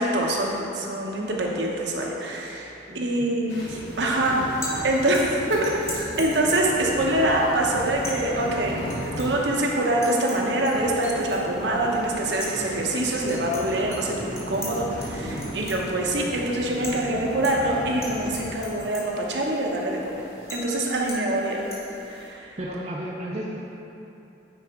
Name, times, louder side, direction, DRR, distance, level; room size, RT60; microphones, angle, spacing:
voice 1, 0.0-20.2 20.5-21.6 22.1-22.6, right 1 dB, 70° right, -1 dB, 0.9 m, -25 dB
voice 2, 2.9-3.3 22.6-23.6, right 1 dB, 35° right, -3 dB, 0.5 m, -33 dB
sound 1, 3.5-18.5, equal, 70° left, 1.2 m, -36 dB
sound 2, 3.9-22.3, left 1 dB, 15° left, 1.0 m, -41 dB
9.4 x 4.2 x 3.6 m, 2.8 s
head